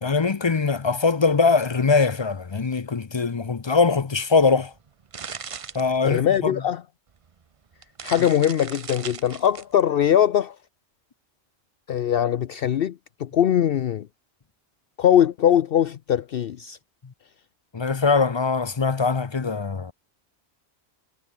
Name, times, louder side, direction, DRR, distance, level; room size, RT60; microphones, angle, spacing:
voice 1, 0.0-4.7 5.7-6.5 17.7-19.9, left 4 dB, 30° left, 0.6 m, -22 dB
sound 1, 4.7-6.5 7.2-7.3 7.7-9.8, right 6 dB, 40° right, 0.6 m, -38 dB
voice 2, 6.0-6.8 8.0-10.6 11.9-14.1 15.0-16.8, left 10 dB, 60° left, 0.8 m, -21 dB
omnidirectional pair, 1.1 m